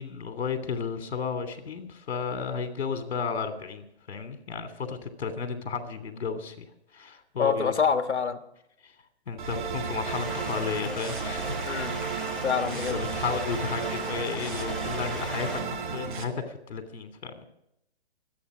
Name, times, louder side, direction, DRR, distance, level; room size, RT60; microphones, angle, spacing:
voice 1, 0.0-6.7 6.9-7.7 8.8-8.9 9.3-11.6 12.9-17.4, left 5 dB, 65° left, 8 dB, 3.1 m, -33 dB
voice 2, 7.4-8.4 11.7-12.0 12.4-13.0, left 6 dB, 90° left, 8 dB, 1.6 m, -26 dB
sound 1, 9.4-16.2, right 5 dB, 45° right, 2.2 m, -33 dB
Stream, 10.0-15.6, left 2 dB, ahead, 1.7 m, -39 dB
25.5 x 9.3 x 5.1 m, 0.82 s
hypercardioid pair, 155°, 33 cm